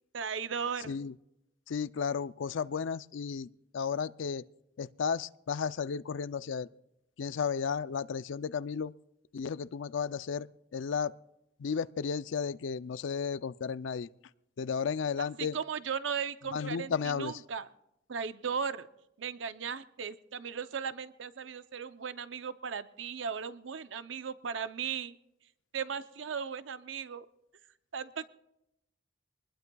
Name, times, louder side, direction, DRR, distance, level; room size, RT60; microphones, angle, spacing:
voice 1, 0.1-1.0 15.2-17.7 18.1-18.9 19.2-25.2 25.7-27.3 27.9-28.3, right 6 dB, 80° right, 12 dB, 0.6 m, -37 dB
voice 2, 1.7-3.5 3.7-4.4 4.8-6.7 7.2-8.9 9.3-10.5 10.7-11.1 11.6-14.1 14.6-15.6 16.5-17.3, left 6 dB, 85° left, 16 dB, 0.4 m, -33 dB
23.5 x 20.0 x 2.3 m, 0.85 s
head